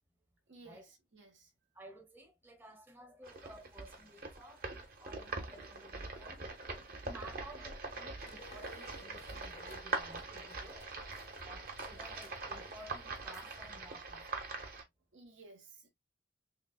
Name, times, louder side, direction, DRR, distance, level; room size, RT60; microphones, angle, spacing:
voice 1, 0.5-1.5 15.1-15.9, right 3 dB, 80° right, 1.4 m, -57 dB
voice 2, 1.7-4.7 5.0-6.4 7.0-10.8 11.4-14.6, right 1 dB, 10° right, 0.7 m, -55 dB
sound 1, 3.2-14.8, right 3 dB, 50° right, 1.0 m, -43 dB
sound 2, 8.2-13.7, left 3 dB, 35° left, 0.6 m, -59 dB
6.4 x 2.2 x 2.3 m
head